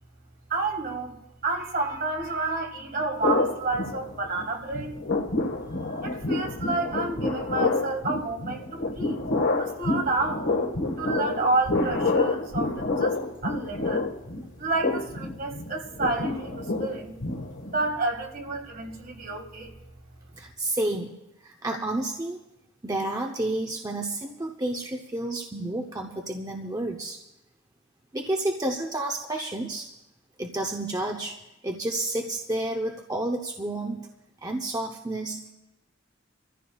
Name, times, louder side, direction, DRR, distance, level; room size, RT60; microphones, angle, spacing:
voice 1, 0.5-5.0 6.0-9.3 9.6-10.6 11.0-14.0 14.6-17.2 17.7-19.7, right 3 dB, 50° right, 2 dB, 1.7 m, -30 dB
sound 1, 3.2-4.5 4.7-17.9, left 2 dB, 75° left, 1.5 m, -28 dB
voice 2, 20.4-21.1 21.4-22.4 22.8-27.2 28.1-29.9 30.4-34.1 34.4-35.5, right 2 dB, 20° right, 2 dB, 0.7 m, -30 dB
27.5 x 14.5 x 2.3 m, 0.91 s
head